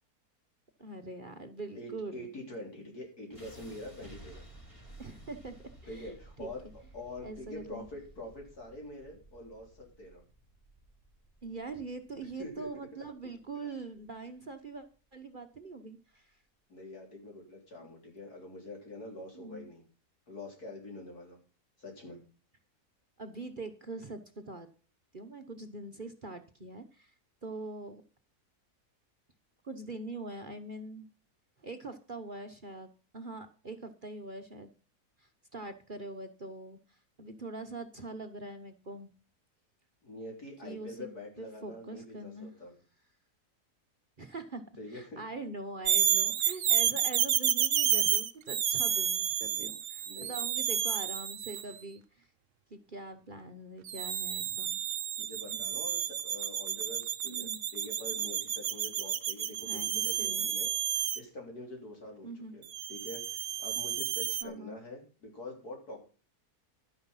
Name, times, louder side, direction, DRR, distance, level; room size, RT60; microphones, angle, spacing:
voice 1, 0.8-2.3 5.0-6.5 7.2-7.8 11.4-14.8 15.1-16.4 17.8-17.9 19.3-19.7 23.2-24.7 25.1-27.1 27.4-28.0 29.6-31.1 31.6-32.9 33.1-34.7 35.2-39.1 40.6-41.1 41.4-42.5 44.2-44.6 44.9-52.3 52.7-54.8 55.5-55.7 57.2-57.6 59.6-60.5 62.2-62.5 64.4-64.7, right 2 dB, 35° right, 6 dB, 1.0 m, -43 dB
voice 2, 1.8-4.4 5.9-6.7 6.9-10.2 12.4-12.7 16.7-19.8 20.3-21.4 21.8-22.2 40.0-42.7 44.8-45.2 50.1-50.4 55.2-60.7 61.1-62.6 62.9-66.0, left 1 dB, 70° left, 1 dB, 4.2 m, -45 dB
sound 1, 3.3-15.4, right 1 dB, 20° left, 2.6 m, -55 dB
sound 2, 45.9-51.7 53.9-61.2 62.7-64.4, right 10 dB, 60° right, 1.0 m, -31 dB
11.5 x 9.9 x 5.6 m, 0.37 s
omnidirectional pair, 1.7 m